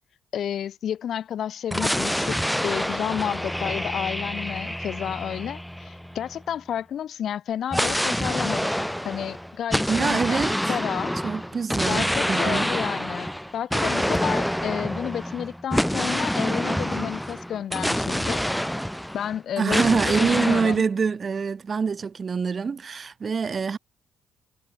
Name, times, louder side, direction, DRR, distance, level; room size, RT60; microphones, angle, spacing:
voice 1, 0.3-8.7 9.0-11.1 11.9-13.3 13.5-18.4 19.1-20.8, left 9 dB, 65° left, 7.4 m, -31 dB
sound 1, 1.7-6.4 7.7-19.4 19.7-20.8, equal, ahead, 4.5 m, -27 dB
voice 2, 9.9-10.6 11.2-12.7 19.6-23.8, right 5 dB, 40° right, 7.7 m, -25 dB
cardioid pair, 90°, 0 cm